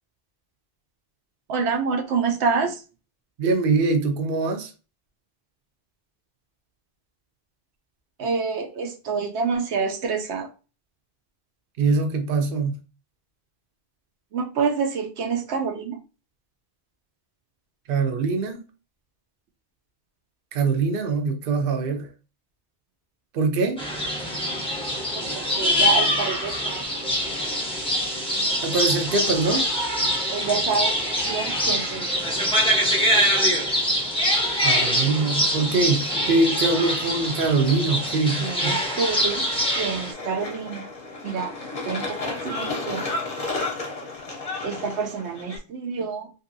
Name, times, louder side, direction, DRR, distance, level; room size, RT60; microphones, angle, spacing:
voice 1, 1.5-2.8 8.2-10.5 14.3-16.0 25.0-27.6 30.3-32.4 37.9-38.1 38.4-39.4 39.7-40.9 41.2-41.5 41.8-43.1 44.6-46.3, right 5 dB, 90° right, 0.9 m, -28 dB
voice 2, 3.4-4.7 11.8-12.8 17.9-18.6 20.5-22.1 23.3-23.8 28.6-29.6 34.6-38.8, right 3 dB, 60° right, 0.8 m, -23 dB
sound 1, 23.8-40.1, equal, 5° left, 0.5 m, -24 dB
sound 2, 26.8-45.6, left 3 dB, 40° left, 0.7 m, -36 dB
2.7 x 2.6 x 2.6 m
omnidirectional pair, 1.1 m